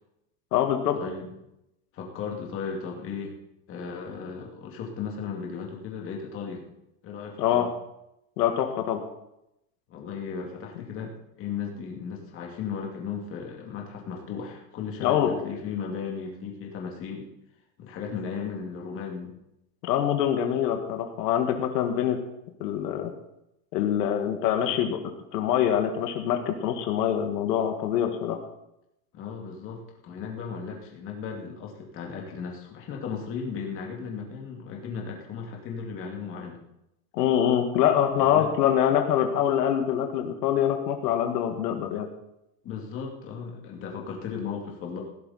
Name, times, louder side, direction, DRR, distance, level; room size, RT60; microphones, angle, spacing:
voice 1, 0.5-1.0 7.4-7.7 8.4-9.0 15.0-15.3 19.8-22.2 22.6-23.1 23.7-25.0 25.3-28.4 37.1-42.1, left 10 dB, 80° left, 5 dB, 2.1 m, -24 dB
voice 2, 1.9-3.4 3.7-6.6 7.0-7.7 9.9-17.3 17.8-19.3 29.1-36.6 38.2-38.5 42.6-45.0, left 6 dB, 25° left, 0 dB, 2.4 m, -36 dB
16.5 x 11.5 x 4.3 m, 0.84 s
supercardioid pair, 170°, 47 cm